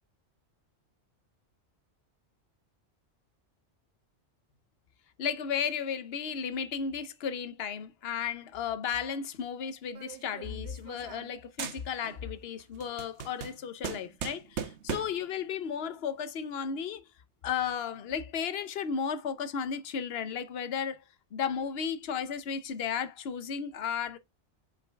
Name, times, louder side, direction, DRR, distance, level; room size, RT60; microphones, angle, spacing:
voice 1, 5.2-17.1 17.4-21.0 21.3-24.2, left 7 dB, 65° left, 1.0 m, -34 dB
sound 1, 9.9-11.3 11.6-12.3 12.6-15.3, right 7 dB, 75° right, 1.1 m, -39 dB
5.7 x 5.2 x 3.3 m
omnidirectional pair, 1.2 m